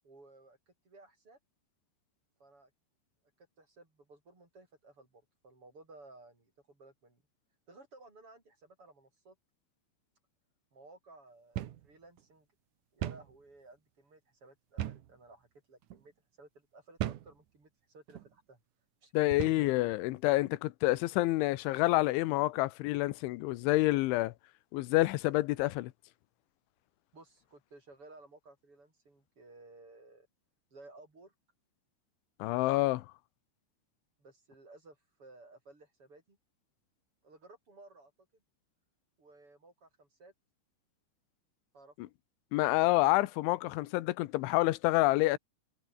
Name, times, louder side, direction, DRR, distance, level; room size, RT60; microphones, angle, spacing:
voice 1, 0.0-1.4 2.4-2.7 3.4-7.2 7.7-9.4 10.7-12.5 12.9-16.1 16.4-18.6 19.0-19.8 27.1-30.3 30.7-31.3 32.5-32.8 34.2-36.4 37.2-38.4 39.2-40.3 41.7-42.1, right 2 dB, 30° right, 7.2 m, -57 dB
sound 1, 11.6-11.9 12.2-12.3 13.0-13.3 14.8-15.1 15.8-16.0 17.0-17.3 18.1-18.3 19.3-19.7, right 12 dB, 70° right, 1.9 m, -37 dB
voice 2, 19.1-24.3 24.7-25.9 32.4-33.1 42.5-45.4, left 19 dB, 85° left, 3.2 m, -28 dB
omnidirectional pair, 5.4 m